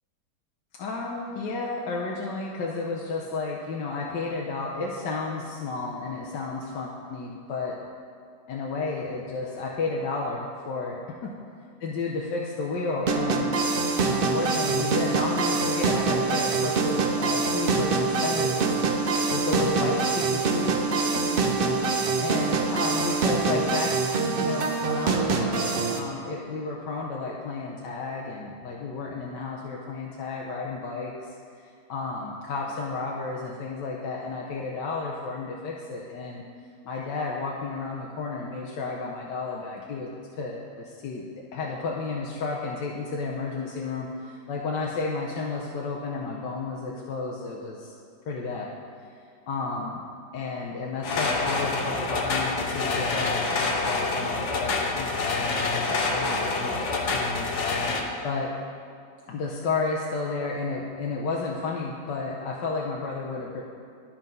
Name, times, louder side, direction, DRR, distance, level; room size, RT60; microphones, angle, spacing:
voice 1, 0.8-7.8 8.5-11.3 11.8-13.5 14.1-18.8 19.3-20.9 21.1-21.2 21.7-31.1 31.9-36.4 36.8-40.1 40.4-41.2 41.5-47.9 48.3-48.7 49.5-50.0 50.3-58.5 59.3-63.6, left 3 dB, 80° left, -3 dB, 1.4 m, -32 dB
sound 1, 13.1-26.0, right 4 dB, 65° right, 0.5 m, -25 dB
sound 2, 51.0-58.0, left 3 dB, 50° left, 1.0 m, -27 dB
12.0 x 4.4 x 5.3 m, 2.3 s
omnidirectional pair, 1.9 m